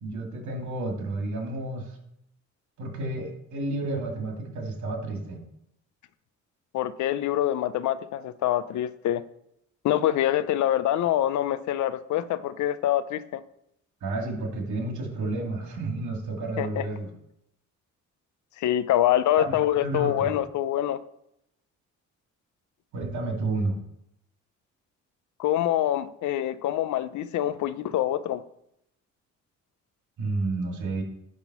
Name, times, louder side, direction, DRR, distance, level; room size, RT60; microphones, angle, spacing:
voice 1, 0.0-2.0 2.8-5.4 14.0-17.1 19.4-20.3 22.9-23.8 30.2-31.0, right 2 dB, 70° right, 1 dB, 2.4 m, -31 dB
voice 2, 6.7-9.2 9.8-13.4 16.6-16.8 18.6-21.0 25.4-28.4, left 12 dB, 70° left, 14 dB, 0.6 m, -25 dB
10.5 x 3.7 x 6.0 m, 0.77 s
cardioid pair, 90°, 30 cm